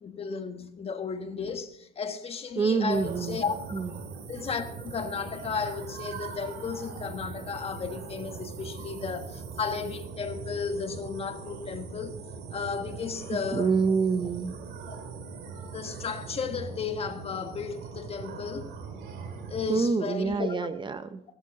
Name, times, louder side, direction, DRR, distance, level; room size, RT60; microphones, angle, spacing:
voice 1, 0.0-3.5 4.3-12.1 12.5-13.7 14.9-15.0 15.7-18.7 19.5-20.7, left 5 dB, 35° left, 1.3 m, -34 dB
voice 2, 2.6-3.4 3.7-3.9 13.3-14.6 19.7-21.2, right 5 dB, 30° right, 0.7 m, -27 dB
sound 1, 2.9-19.8, right 5 dB, 75° right, 2.7 m, -41 dB
14.0 x 11.5 x 3.9 m
cardioid pair, 110°, 17 cm